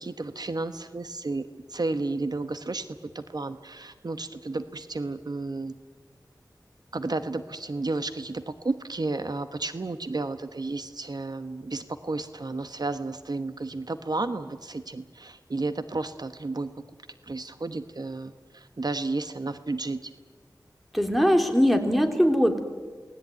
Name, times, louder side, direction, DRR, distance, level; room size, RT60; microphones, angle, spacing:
voice 1, 0.0-2.8 3.1-5.7 6.9-16.8 17.3-20.1, right 3 dB, 60° right, 10 dB, 1.2 m, -32 dB
voice 2, 20.9-22.6, equal, ahead, 5 dB, 3.4 m, -21 dB
28.5 x 19.5 x 9.3 m, 1.5 s
wide cardioid pair, 65°, 8 cm